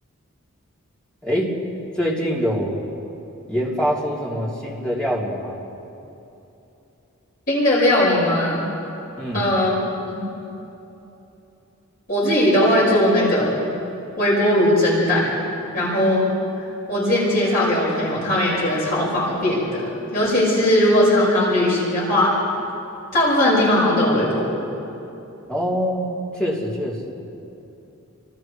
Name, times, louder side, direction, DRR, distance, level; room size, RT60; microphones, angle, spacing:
voice 1, 1.2-1.5 2.0-2.8 3.5-5.6 9.2-9.5 25.5-27.2, equal, 5° left, -6 dB, 3.4 m, -24 dB
voice 2, 7.5-8.6 9.3-9.7 10.1-10.2 12.1-13.6 14.1-15.3 15.7-16.3 16.9-22.3 23.1-24.6, left 1 dB, 40° left, -7 dB, 6.0 m, -19 dB
29.5 x 26.0 x 3.4 m, 2.9 s
head